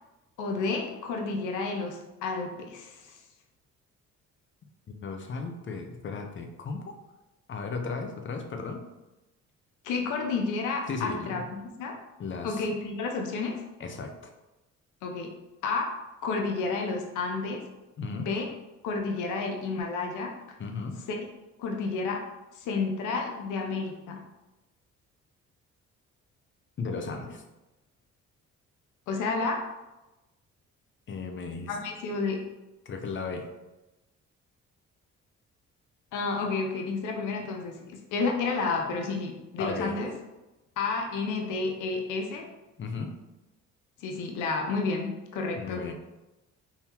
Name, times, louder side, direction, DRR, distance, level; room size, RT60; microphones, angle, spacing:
voice 1, 0.4-3.2 9.8-11.9 12.4-13.6 15.0-15.3 15.6-15.9 16.2-17.6 18.1-18.5 18.8-20.3 21.1-21.2 21.6-22.2 22.6-24.2 29.1-29.6 31.7-32.4 36.1-40.1 40.8-42.4 44.0-45.8, left 4 dB, 85° left, 2 dB, 0.6 m, -31 dB
voice 2, 4.9-6.9 7.5-8.8 10.9-11.5 12.2-12.6 13.8-14.2 18.0-18.3 20.6-21.0 26.8-27.4 31.1-31.8 32.9-33.5 39.6-40.0 42.8-43.1 45.6-45.9, left 4 dB, 40° left, 5 dB, 0.6 m, -35 dB
3.8 x 2.8 x 2.8 m, 1.0 s
cardioid pair, 90°, 30 cm